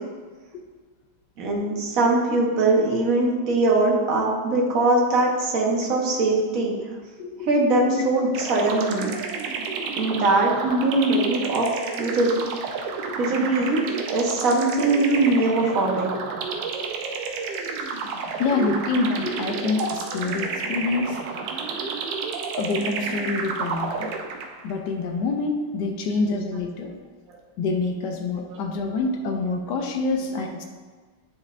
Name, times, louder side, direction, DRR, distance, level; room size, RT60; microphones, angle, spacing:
voice 1, 1.4-6.7 7.4-9.1 10.0-11.7 12.0-12.3 13.2-13.8 14.1-16.1, right 2 dB, 50° right, -1 dB, 1.1 m, -21 dB
voice 2, 7.2-7.5 10.1-10.2 13.1-13.2 18.4-21.2 22.6-24.1 24.6-27.0 27.6-30.6, left 3 dB, 75° left, 3 dB, 1.0 m, -26 dB
sound 1, 8.3-24.7, right 4 dB, 70° right, 1.1 m, -31 dB
9.5 x 4.2 x 2.5 m, 1.5 s
omnidirectional pair, 2.4 m